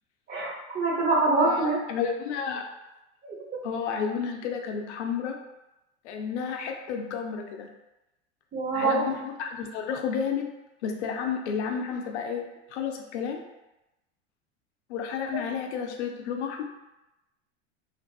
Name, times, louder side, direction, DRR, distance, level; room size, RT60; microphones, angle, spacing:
voice 1, 0.3-1.8 3.2-3.6 8.5-9.1, right 3 dB, 30° right, -3 dB, 0.7 m, -25 dB
voice 2, 1.4-2.6 3.6-5.4 6.0-7.7 8.7-10.4 10.8-13.4 14.9-16.6, left 6 dB, 80° left, 3 dB, 0.5 m, -31 dB
2.4 x 2.2 x 2.3 m, 0.96 s
hypercardioid pair, 90°, 34 cm